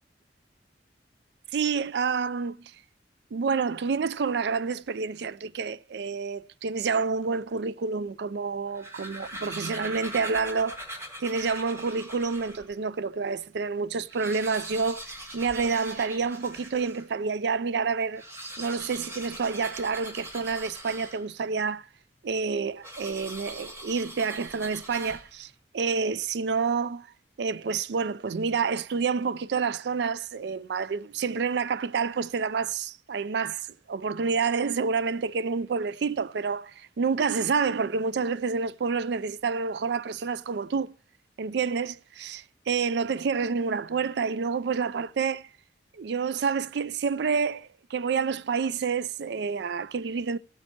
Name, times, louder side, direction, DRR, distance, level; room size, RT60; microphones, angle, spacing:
voice 1, 1.5-2.7 3.3-10.8 11.2-18.2 18.6-21.9 22.2-27.1 27.4-40.9 41.4-45.5 45.9-50.4, right 5 dB, 65° right, 0.4 m, -28 dB
sound 1, 8.6-12.7 13.3-13.4 13.6-13.7 14.0-17.1 18.1-21.5 22.8-25.5, equal, 15° right, 1.6 m, -41 dB
16.0 x 8.7 x 2.8 m
head